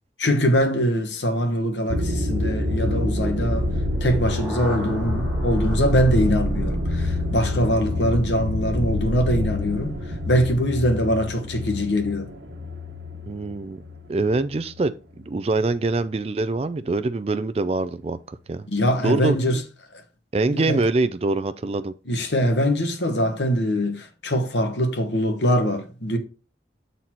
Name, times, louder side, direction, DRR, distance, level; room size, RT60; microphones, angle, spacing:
voice 1, 0.2-3.7 4.0-12.3 18.7-19.6 20.5-20.9 22.1-26.2, equal, 85° left, 1.2 m, -23 dB
sound 1, 1.9-14.9 15.2-15.8, left 1 dB, 80° right, 1.1 m, -27 dB
sound 2, 3.9-7.9, equal, ahead, 2.0 m, -39 dB
voice 2, 13.3-13.8 14.1-14.9 15.3-18.7 19.0-19.4 20.3-21.9, right 3 dB, 35° right, 0.4 m, -24 dB
7.6 x 4.1 x 4.3 m
head